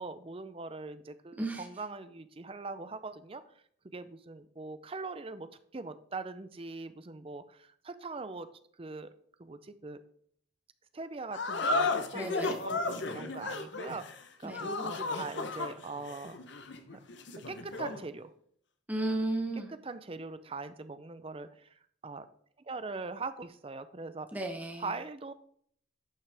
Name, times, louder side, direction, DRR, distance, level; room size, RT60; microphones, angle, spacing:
voice 1, 0.0-3.4 3.9-8.5 8.8-9.1 9.4-10.0 10.9-14.1 14.4-16.4 17.5-18.3 19.8-21.7 22.0-22.2 22.6-24.3 24.8-25.3, right 3 dB, 30° right, 12 dB, 0.5 m, -41 dB
sound 1, 11.3-18.0, left 3 dB, 60° left, 0.8 m, -34 dB
voice 2, 12.1-12.5 14.4-14.6 18.9-19.7 24.3-24.9, right 2 dB, 10° right, 3 dB, 0.9 m, -34 dB
11.5 x 5.8 x 3.4 m, 0.63 s
head